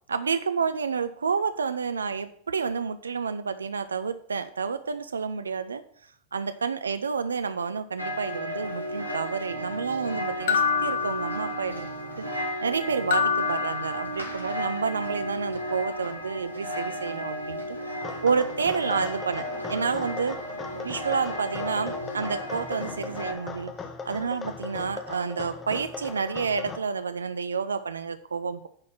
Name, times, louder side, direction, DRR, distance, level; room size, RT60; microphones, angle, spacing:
voice 1, 0.1-5.8 6.3-11.9 12.2-17.8 18.2-20.4 20.8-23.7 24.1-28.7, right 5 dB, 70° right, 12 dB, 0.4 m, -29 dB
sound 1, 8.0-23.3, equal, 80° left, 1.3 m, -34 dB
sound 2, 10.5-11.9 13.1-14.6, left 7 dB, 55° left, 0.5 m, -27 dB
sound 3, 18.0-26.8, left 5 dB, 20° left, 1.0 m, -39 dB
9.6 x 4.2 x 5.7 m, 0.65 s
figure-of-eight pair, 90°, 0 cm